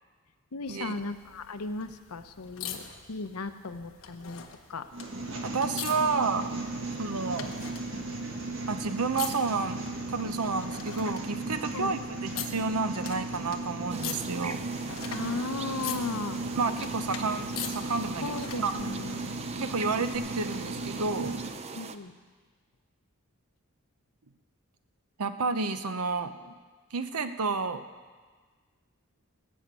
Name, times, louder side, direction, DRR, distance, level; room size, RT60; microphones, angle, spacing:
voice 1, 0.5-4.9 11.7-11.9 15.0-16.4 18.2-19.3 21.7-22.1, left 3 dB, 90° left, 9 dB, 0.8 m, -36 dB
sound 1, 0.7-18.8 20.1-20.2, left 8 dB, 70° left, 1.2 m, -44 dB
sound 2, 4.9-21.5, right 2 dB, 60° right, 1.8 m, -36 dB
voice 2, 5.4-6.5 7.0-7.5 8.7-14.6 16.6-18.7 19.6-21.5 25.2-26.5 26.9-27.8, right 4 dB, 90° right, 10 dB, 0.8 m, -30 dB
sound 3, 13.9-22.0, right 5 dB, 30° right, 0.5 m, -42 dB
19.0 x 6.5 x 8.3 m, 1.5 s
head